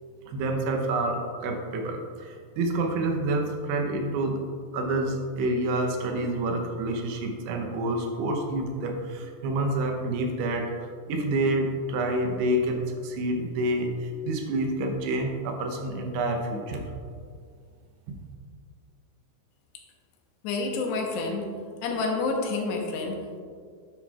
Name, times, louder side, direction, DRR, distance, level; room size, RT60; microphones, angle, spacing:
voice 1, 0.3-4.4 4.7-16.8 18.1-18.2, right 1 dB, 85° right, 2 dB, 3.0 m, -28 dB
voice 2, 20.4-21.5 21.8-23.4, left 3 dB, 85° left, 1 dB, 3.1 m, -29 dB
10.0 x 7.8 x 2.4 m, 2.2 s
omnidirectional pair, 4.7 m